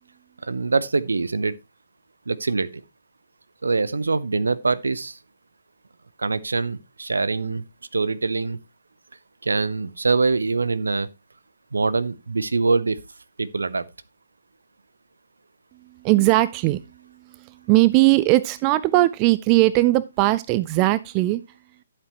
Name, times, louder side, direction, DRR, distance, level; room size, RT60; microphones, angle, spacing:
voice 1, 0.4-1.5 2.3-2.7 3.6-5.2 6.2-7.6 7.9-8.6 9.4-11.1 11.7-13.0 13.4-13.9, right 3 dB, 70° right, 0.8 m, -23 dB
voice 2, 16.0-16.8 17.4-21.4, right 18 dB, 25° right, 0.4 m, -19 dB
11.5 x 7.7 x 3.0 m
figure-of-eight pair, 135°, 0 cm